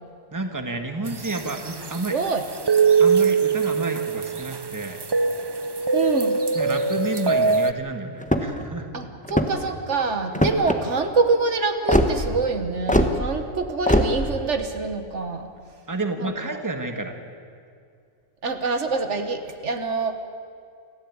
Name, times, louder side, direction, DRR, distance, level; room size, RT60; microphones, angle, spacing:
voice 1, 0.3-2.2 3.0-5.0 6.5-8.9 15.9-17.2, right 2 dB, 15° right, 5 dB, 1.7 m, -30 dB
sound 1, 1.1-7.7, right 5 dB, 30° right, 0.4 m, -23 dB
voice 2, 2.1-2.4 5.9-6.4 8.9-15.5 16.2-16.3 18.4-20.1, right 4 dB, 70° right, 7 dB, 1.7 m, -25 dB
sound 2, 8.2-8.7 9.2-9.7 10.3-10.8 11.9-12.1 12.9-13.1 13.9-14.1, equal, 5° left, 1.2 m, -20 dB
27.5 x 14.5 x 8.7 m, 2.3 s
omnidirectional pair, 1.2 m